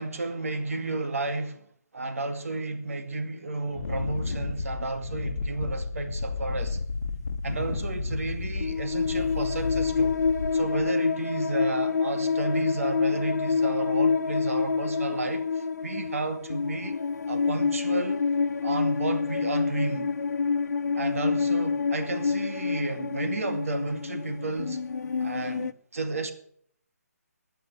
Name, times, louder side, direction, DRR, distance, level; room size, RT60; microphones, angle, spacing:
voice 1, 0.0-1.7 1.9-6.8 7.4-10.2 10.5-17.0 17.3-18.3 18.6-20.2 20.9-24.8 25.2-26.3, right 2 dB, 60° right, 2.3 m, -32 dB
Wind, 3.7-10.9, left 4 dB, 60° left, 1.1 m, -33 dB
sound 1, 8.6-25.7, left 5 dB, 85° left, 0.6 m, -27 dB
12.5 x 9.3 x 9.3 m
hypercardioid pair, 180°, 9 cm